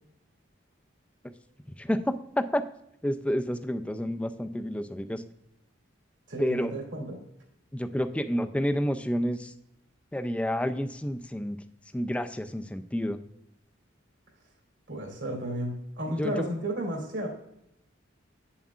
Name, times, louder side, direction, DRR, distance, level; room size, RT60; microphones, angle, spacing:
voice 1, 1.8-2.7 3.0-5.2 6.4-6.7 7.7-9.5 10.1-11.6 11.9-13.2 16.1-16.5, equal, 5° left, 9 dB, 0.3 m, -29 dB
voice 2, 6.3-7.2 14.9-17.3, right 1 dB, 70° right, 1 dB, 2.4 m, -33 dB
8.3 x 7.2 x 2.4 m, 0.78 s
head